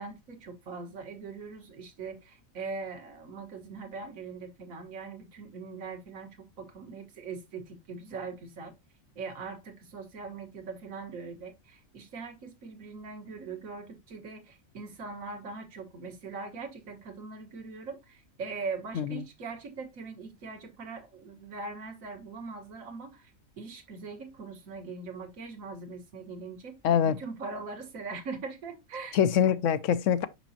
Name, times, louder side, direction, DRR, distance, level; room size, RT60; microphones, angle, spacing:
voice 1, 0.0-6.3 6.6-8.7 9.2-23.3 23.6-26.8 27.0-29.2, right 4 dB, 75° right, 1.7 m, -41 dB
voice 2, 26.8-27.2 29.1-30.3, left 8 dB, 70° left, 0.9 m, -24 dB
5.9 x 5.9 x 2.7 m
omnidirectional pair, 1.4 m